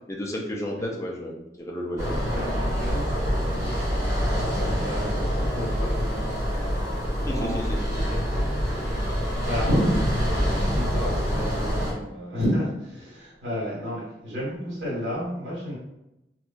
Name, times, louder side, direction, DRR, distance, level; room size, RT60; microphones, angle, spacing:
voice 1, 0.0-2.2 7.2-7.8, equal, 15° left, -1 dB, 0.4 m, -32 dB
sound 1, 2.0-11.9, equal, 20° right, 1.0 m, -26 dB
voice 2, 2.0-15.8, equal, 85° right, -6 dB, 1.5 m, -32 dB
3.1 x 2.5 x 2.3 m, 0.89 s
head